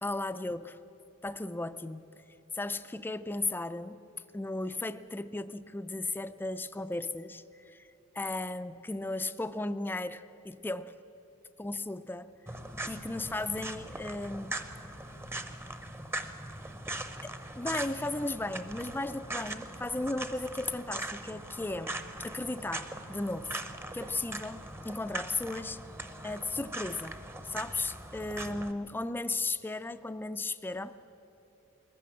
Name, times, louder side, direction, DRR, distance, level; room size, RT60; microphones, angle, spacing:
voice 1, 0.0-0.8 1.2-2.1 2.5-4.0 4.3-7.8 8.1-10.9 11.6-12.3 12.9-14.5 17.6-23.6 23.9-25.8 26.2-31.0, left 2 dB, 10° left, 12 dB, 0.4 m, -35 dB
sound 1, 12.5-28.7, right 2 dB, 10° right, 0.7 m, -41 dB
21.0 x 14.0 x 8.7 m, 3.0 s
head